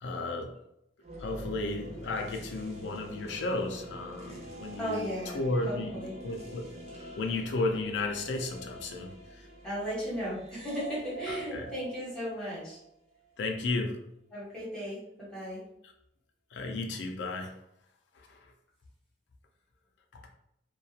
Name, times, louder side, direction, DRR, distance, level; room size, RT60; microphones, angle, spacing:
voice 1, 0.0-0.5 1.2-5.1 5.3-5.9 6.2-6.6 7.2-9.4 11.5-11.6 13.4-14.0 16.5-17.5 18.3-18.4, left 2 dB, 70° left, 3 dB, 0.4 m, -33 dB
sound 1, 1.0-13.2, right 1 dB, 35° right, 0.5 m, -45 dB
voice 2, 4.8-5.4 5.7-6.2 9.6-12.8 14.3-15.6, equal, 5° left, -8 dB, 1.2 m, -36 dB
2.4 x 2.2 x 2.7 m, 0.80 s
head